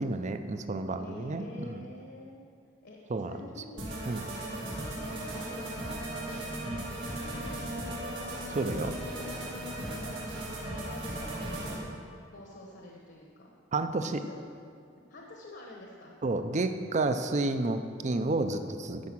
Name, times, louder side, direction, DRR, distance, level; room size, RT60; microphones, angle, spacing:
voice 1, 0.0-1.8 3.1-3.3 4.1-4.3 6.7-6.8 8.5-8.9 13.7-14.2 16.2-19.0, right 2 dB, 40° right, 9 dB, 0.5 m, -30 dB
voice 2, 1.0-2.4 2.8-3.9 4.8-5.7 6.1-6.5 7.2-8.4 8.8-10.2 10.7-11.8 12.3-13.5 14.1-14.4 15.1-16.1, left 2 dB, 60° left, -1 dB, 1.1 m, -48 dB
sound 1, 3.8-11.8, right 1 dB, 90° right, 2.6 m, -37 dB
14.0 x 4.9 x 6.1 m, 2.3 s
head